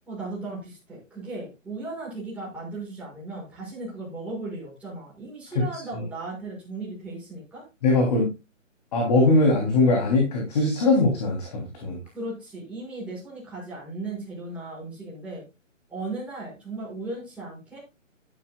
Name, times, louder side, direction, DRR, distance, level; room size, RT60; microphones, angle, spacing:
voice 1, 0.1-7.6 12.1-15.4 15.9-17.8, right 2 dB, 5° right, -7 dB, 5.9 m, -36 dB
voice 2, 7.8-8.3 8.9-12.0, left 2 dB, 30° left, 1 dB, 3.2 m, -21 dB
13.0 x 11.0 x 2.3 m, 0.26 s
hypercardioid pair, 165°, 39 cm